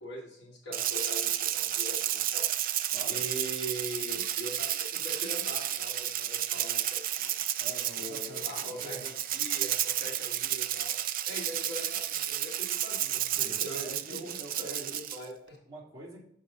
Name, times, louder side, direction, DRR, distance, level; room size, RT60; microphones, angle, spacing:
voice 1, 0.0-2.5 3.1-7.4 8.0-11.0 11.3-13.3 13.6-15.6, equal, 60° left, -1 dB, 1.8 m, -42 dB
Rattle (instrument), 0.7-15.2, right 12 dB, 45° right, 0.4 m, -32 dB
voice 2, 2.9-3.2 7.6-9.0 13.4-14.7 15.7-16.2, right 1 dB, 20° right, -6 dB, 2.5 m, -45 dB
6.4 x 5.6 x 3.8 m, 0.71 s
head